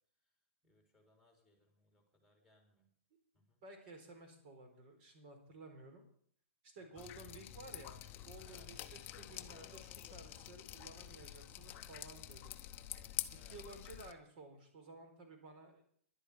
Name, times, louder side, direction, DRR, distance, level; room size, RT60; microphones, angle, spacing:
voice 1, 0.6-2.9 3.3-3.6 6.7-6.8 8.4-8.7 11.6-11.9 13.3-13.6, left 2 dB, 5° right, 2 dB, 3.4 m, -69 dB
voice 2, 3.6-6.1 6.6-12.5 13.4-15.8, right 2 dB, 45° right, 6 dB, 4.0 m, -55 dB
Drip, 7.0-14.1, left 13 dB, 25° left, 0.8 m, -48 dB
11.5 x 8.4 x 9.4 m, 0.62 s
hypercardioid pair, 155°, 8 cm